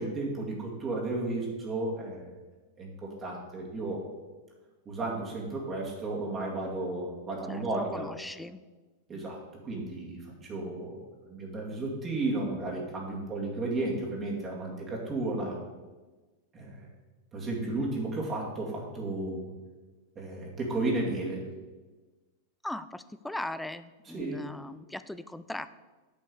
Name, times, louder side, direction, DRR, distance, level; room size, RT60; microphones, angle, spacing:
voice 1, 0.0-2.3 2.8-4.0 4.9-8.1 9.1-11.0 11.2-15.6 16.5-16.9 17.3-19.5 20.2-21.5 24.0-24.4, right 2 dB, 25° right, -3 dB, 2.3 m, -33 dB
voice 2, 7.5-8.6 9.1-9.3 22.6-25.7, left 1 dB, 5° left, 14 dB, 0.4 m, -39 dB
8.9 x 5.4 x 6.8 m, 1.3 s
figure-of-eight pair, 90°, 0 cm